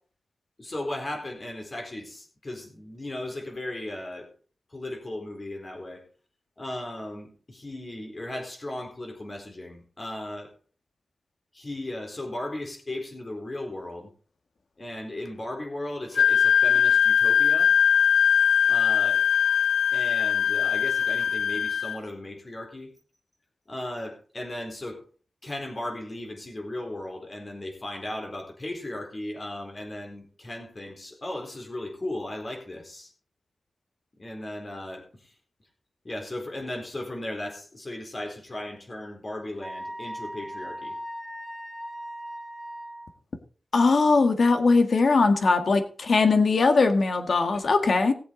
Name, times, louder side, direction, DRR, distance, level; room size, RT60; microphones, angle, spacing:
voice 1, 0.6-4.3 4.7-6.0 6.6-10.5 11.5-14.1 14.8-17.7 18.7-19.3 19.9-22.9 23.7-25.0 25.4-33.1 34.2-35.3 36.0-41.0, left 1 dB, 30° left, 2 dB, 4.1 m, -36 dB
Wind instrument woodwind instrument, 16.2-22.0, left 8 dB, 80° left, 0.7 m, -21 dB
Wind instrument woodwind instrument 2, 39.6-43.1, equal, 10° left, 4.5 m, -38 dB
voice 2, 43.7-48.1, left 3 dB, 60° left, 7 dB, 1.7 m, -20 dB
18.5 x 7.9 x 4.0 m, 0.39 s
wide cardioid pair, 140°, 0 cm